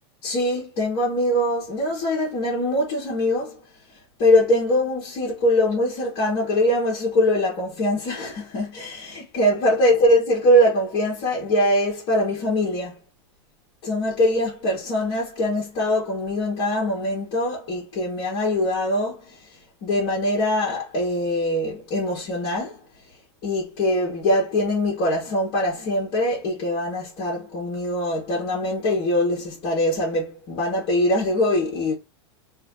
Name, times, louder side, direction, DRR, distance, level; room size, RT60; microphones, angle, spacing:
voice 1, 0.2-3.6 4.2-13.0 13.8-22.8 23.4-31.9, left 1 dB, 40° left, 2.4 m, -22 dB
3.9 x 3.1 x 3.8 m
supercardioid pair, 165°, 14 cm